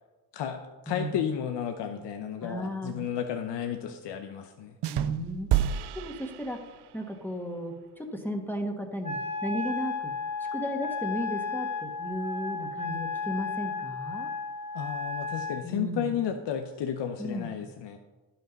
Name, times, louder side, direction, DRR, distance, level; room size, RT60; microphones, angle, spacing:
voice 1, 0.9-4.8 14.7-18.0, left 8 dB, 75° left, 5 dB, 0.8 m, -32 dB
voice 2, 2.4-3.0 4.9-5.5 5.9-6.6 6.9-10.1 10.4-14.3 15.6-16.1 17.2-17.5, equal, 5° left, 3 dB, 1.6 m, -34 dB
sound 1, 4.8-7.0, right 11 dB, 70° right, 0.5 m, -30 dB
Wind instrument woodwind instrument, 9.0-15.6, left 4 dB, 15° right, 1.5 m, -33 dB
11.5 x 5.6 x 5.3 m, 1.2 s
cardioid pair, 75°, 42 cm